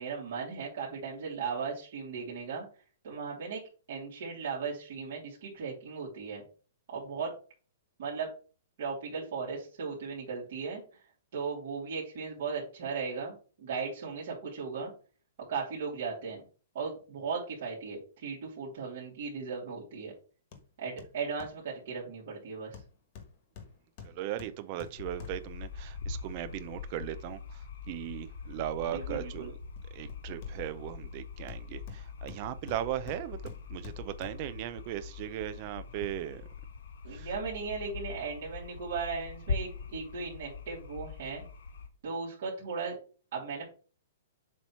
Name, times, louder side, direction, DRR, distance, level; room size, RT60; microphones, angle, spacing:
voice 1, 0.0-2.7 3.0-3.6 3.9-6.4 6.9-7.3 8.0-8.3 8.8-11.0 11.3-14.9 15.5-16.4 16.7-20.1 20.8-22.8 28.9-29.5 37.0-41.4 42.0-43.0 43.3-43.6, right 5 dB, 55° right, 2.7 m, -37 dB
Hammer, 20.5-20.7 21.0-21.6 22.7-25.6 29.4-30.9 31.5-34.6 35.0-35.1, left 6 dB, 35° left, 1.3 m, -50 dB
voice 2, 24.0-29.6 29.9-36.4 37.1-37.3, right 12 dB, 30° right, 0.5 m, -38 dB
sound 1, 25.0-41.9, left 5 dB, 75° left, 1.4 m, -42 dB
7.4 x 3.0 x 5.5 m
hypercardioid pair, 170°, 0 cm